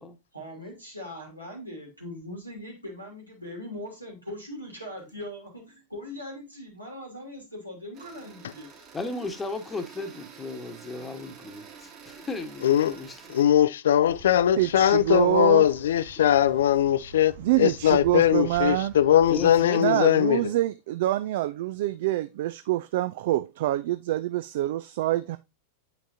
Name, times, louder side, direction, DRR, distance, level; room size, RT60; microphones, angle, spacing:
voice 1, 0.3-8.7, left 1 dB, 90° right, 3.0 m, -40 dB
sound 1, 7.9-13.4, right 6 dB, 35° right, 1.9 m, -48 dB
voice 2, 8.9-13.2 19.3-20.5, left 3 dB, 15° left, 1.1 m, -35 dB
voice 3, 12.6-13.0 13.3-20.4, left 10 dB, 60° left, 0.4 m, -21 dB
sound 2, 14.0-19.7, right 1 dB, 70° right, 1.9 m, -46 dB
voice 4, 14.6-15.6 17.4-18.9 19.7-25.4, right 15 dB, 55° right, 0.3 m, -26 dB
8.5 x 5.8 x 2.7 m
figure-of-eight pair, 90°, 0 cm